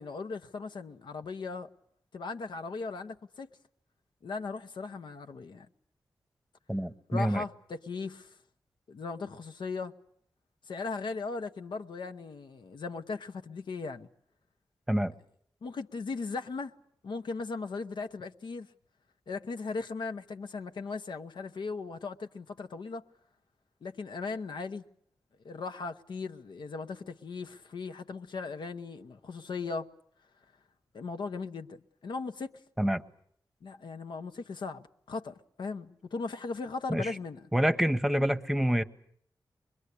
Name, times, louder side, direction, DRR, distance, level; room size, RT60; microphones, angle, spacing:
voice 1, 0.0-1.7 2.1-3.5 4.2-5.7 7.1-8.4 8.9-9.9 10.7-14.1 15.0-15.1 15.6-16.7 17.0-18.7 19.3-23.0 23.8-24.8 25.4-29.9 30.9-32.5 33.6-37.5, left 4 dB, 85° left, 1.0 m, -38 dB
voice 2, 6.7-7.4 14.9-15.1 32.8-33.0 36.9-37.1 37.5-38.8, equal, 5° right, 0.9 m, -27 dB
24.5 x 21.5 x 8.3 m
wide cardioid pair, 105°, 8 cm